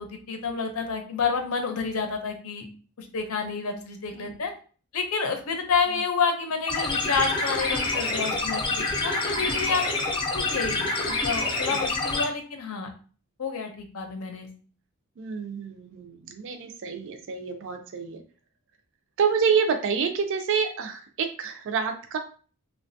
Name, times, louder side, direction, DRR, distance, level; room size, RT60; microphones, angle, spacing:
voice 1, 0.0-2.7 3.0-4.5 4.9-12.9 13.4-14.5, left 5 dB, 75° left, 5 dB, 0.6 m, -29 dB
sound 1, 6.7-12.2, left 3 dB, 20° left, 0.5 m, -27 dB
voice 2, 15.2-18.2 19.2-22.2, right 6 dB, 60° right, 6 dB, 0.4 m, -28 dB
3.1 x 2.2 x 2.6 m, 0.40 s
head